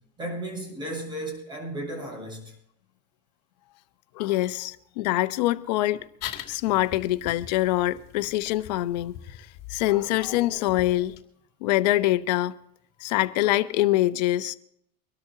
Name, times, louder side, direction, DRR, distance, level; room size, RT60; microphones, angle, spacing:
voice 1, 0.2-2.5, right 1 dB, 20° right, 7.4 m, -34 dB
voice 2, 4.1-6.1 6.5-9.4 9.7-11.1 11.6-12.5 13.0-14.6, left 16 dB, 80° left, 1.0 m, -24 dB
sound 1, 6.2-11.2, left 12 dB, 50° left, 2.4 m, -42 dB
24.5 x 13.0 x 2.9 m
supercardioid pair, 145°, 21 cm